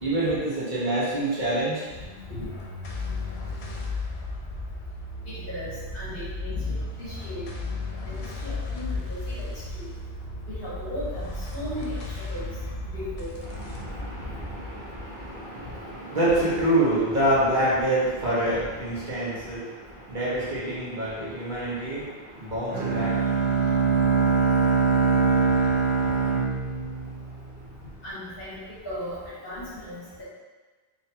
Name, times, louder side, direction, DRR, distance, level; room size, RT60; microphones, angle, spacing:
voice 1, 0.0-1.8 13.6-19.7 20.1-22.0 22.4-23.2, right 1 dB, 50° right, -9 dB, 1.2 m, -26 dB
sound 1, 1.9-16.5, left 2 dB, 85° left, 0.9 m, -35 dB
voice 2, 5.5-7.5 8.1-8.2 8.4-9.5 9.7-9.9 10.5-12.0 12.3-12.5 12.9-13.4 28.0-28.6 28.8-30.0, left 1 dB, 65° left, -11 dB, 1.4 m, -36 dB
Bowed string instrument, 22.7-27.7, right 5 dB, 75° right, 1.2 m, -23 dB
4.1 x 2.9 x 2.7 m, 1.3 s
omnidirectional pair, 1.1 m